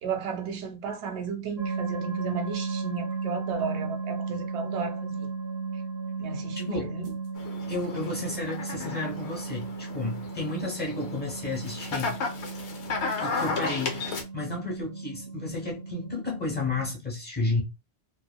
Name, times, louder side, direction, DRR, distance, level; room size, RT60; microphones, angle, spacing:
voice 1, 0.0-5.3 6.2-7.1, right 5 dB, 80° right, 0.9 m, -34 dB
sound 1, 1.6-16.9, right 4 dB, 50° right, 0.6 m, -35 dB
voice 2, 6.7-7.0 7.7-12.2 13.2-14.0 14.3-17.6, left 2 dB, 10° left, 0.9 m, -32 dB
sound 2, 7.4-14.2, left 4 dB, 85° left, 0.9 m, -34 dB
2.8 x 2.4 x 2.2 m
omnidirectional pair, 1.1 m